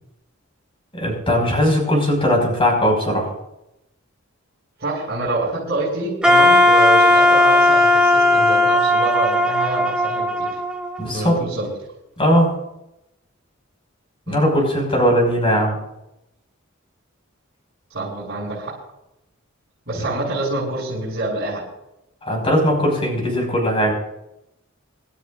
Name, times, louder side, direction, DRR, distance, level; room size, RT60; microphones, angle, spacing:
voice 1, 0.9-3.3 11.0-11.3 12.2-12.5 14.3-15.8 22.2-23.9, equal, 25° left, 0 dB, 5.8 m, -19 dB
voice 2, 4.8-10.6 11.1-11.7 14.3-14.4 17.9-18.8 19.9-21.7, right 2 dB, 55° right, -9 dB, 6.8 m, -26 dB
Wind instrument woodwind instrument, 6.2-11.3, left 1 dB, 5° right, 1.2 m, -16 dB
28.0 x 12.5 x 2.6 m, 0.88 s
head